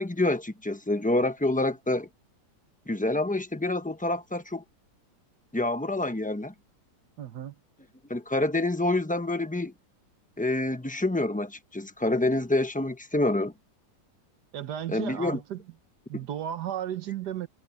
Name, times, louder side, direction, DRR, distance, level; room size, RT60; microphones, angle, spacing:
voice 1, 0.0-2.1 2.9-4.6 5.5-6.5 8.1-9.7 10.4-13.5 14.9-15.4, left 2 dB, 10° left, 0.6 m, -27 dB
voice 2, 7.2-7.6 14.5-15.6 16.1-17.5, right 10 dB, 75° right, 1.6 m, -34 dB
omnidirectional pair, 1.8 m